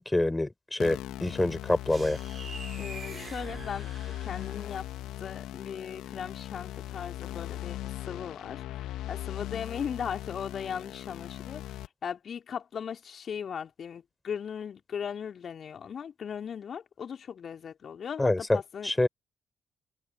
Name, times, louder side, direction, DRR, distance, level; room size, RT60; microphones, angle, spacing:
voice 1, 0.0-2.2 18.2-18.6 18.8-19.1, left 2 dB, 15° left, 4.9 m, -26 dB
sound 1, 0.8-11.9, left 14 dB, 70° left, 2.6 m, -39 dB
sound 2, 1.9-4.8, right 4 dB, 40° right, 6.6 m, -44 dB
voice 2, 2.8-3.9 4.2-4.9 5.2-18.9, left 7 dB, 55° left, 3.6 m, -38 dB
hypercardioid pair, 40°, 0 cm